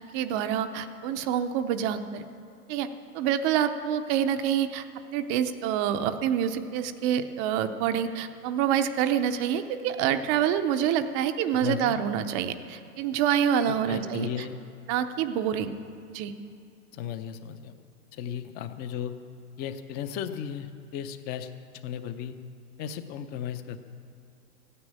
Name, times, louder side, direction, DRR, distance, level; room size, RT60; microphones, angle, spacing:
voice 1, 0.1-2.2 2.7-2.9 3.1-4.9 5.1-14.5 14.9-15.7 16.1-16.3, right 9 dB, 25° right, 10 dB, 0.6 m, -27 dB
voice 2, 11.5-12.0 13.7-14.6 16.9-17.7 18.1-19.1 19.6-21.5 21.8-22.4 22.8-23.8, left 9 dB, 20° left, 10 dB, 0.6 m, -35 dB
15.0 x 9.8 x 8.7 m, 2.5 s
hypercardioid pair, 135°, 46 cm